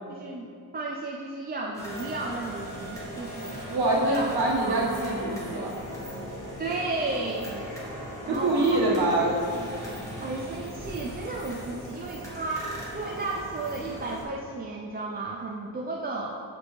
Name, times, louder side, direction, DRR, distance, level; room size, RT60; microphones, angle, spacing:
voice 1, 0.1-0.5 0.7-3.6 4.0-4.8 6.6-7.5 8.2-9.7 10.2-16.3, right 2 dB, 25° right, -1 dB, 0.4 m, -34 dB
sound 1, 1.7-14.2, equal, 10° left, 1.5 m, -39 dB
sound 2, 3.2-10.2, left 2 dB, 55° left, 1.4 m, -44 dB
voice 2, 3.7-5.7 8.3-9.4, right 2 dB, 70° right, -5 dB, 1.3 m, -25 dB
6.7 x 5.1 x 3.1 m, 2.4 s
cardioid pair, 105°, 39 cm